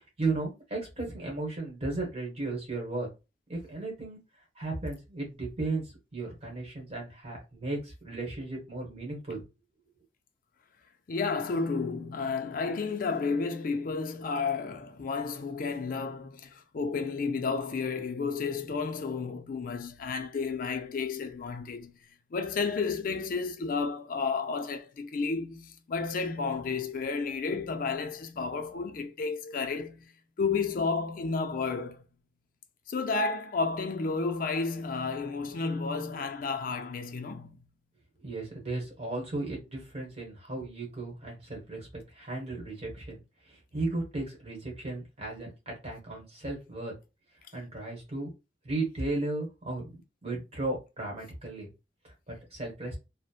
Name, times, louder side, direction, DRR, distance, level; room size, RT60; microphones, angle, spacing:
voice 1, 0.2-3.1 3.5-4.2 4.6-9.4 38.2-41.9 42.1-43.2 43.7-46.9 47.5-48.3 48.6-51.7 52.3-52.9, right 2 dB, 35° right, 1.1 m, -35 dB
voice 2, 11.1-21.9 22.3-30.1 30.4-32.0 32.9-37.6, left 4 dB, 50° left, 0.4 m, -32 dB
3.0 x 2.0 x 2.3 m
head